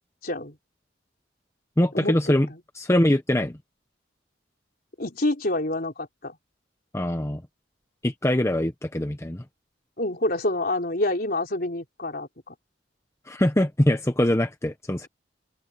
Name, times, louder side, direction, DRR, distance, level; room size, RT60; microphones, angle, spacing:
voice 1, 0.2-0.6 1.9-2.6 5.0-6.4 10.0-12.5, left 1 dB, 50° left, 4.1 m, -27 dB
voice 2, 1.8-2.5 2.7-3.6 6.9-7.4 8.0-9.4 13.3-15.1, left 1 dB, 15° left, 1.0 m, -23 dB
open air
head